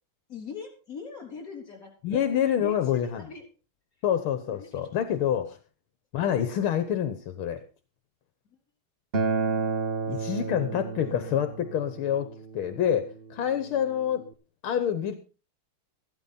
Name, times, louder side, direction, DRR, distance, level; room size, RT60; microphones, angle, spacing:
voice 1, 0.3-2.3 2.6-3.4 4.5-4.7, left 5 dB, 40° left, 2 dB, 4.2 m, -41 dB
voice 2, 2.0-3.3 4.0-5.6 6.1-7.6 10.1-14.3 14.6-15.1, left 9 dB, 75° left, 9 dB, 1.9 m, -27 dB
Acoustic guitar, 9.1-14.3, right 4 dB, 40° right, 0.8 m, -32 dB
14.5 x 12.5 x 4.1 m, 0.34 s
omnidirectional pair, 2.4 m